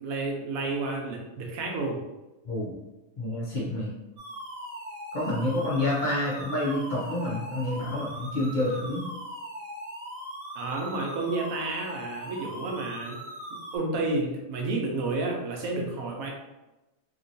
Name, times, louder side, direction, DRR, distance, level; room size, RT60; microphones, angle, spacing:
voice 1, 0.0-2.0 10.5-13.2 13.7-16.3, right 3 dB, 85° right, 0 dB, 1.1 m, -30 dB
voice 2, 3.2-3.9 5.1-9.0, left 1 dB, 45° left, -6 dB, 0.7 m, -28 dB
sound 1, 4.2-13.8, equal, 40° right, 0.7 m, -40 dB
3.0 x 2.9 x 2.6 m, 1.0 s
omnidirectional pair, 1.4 m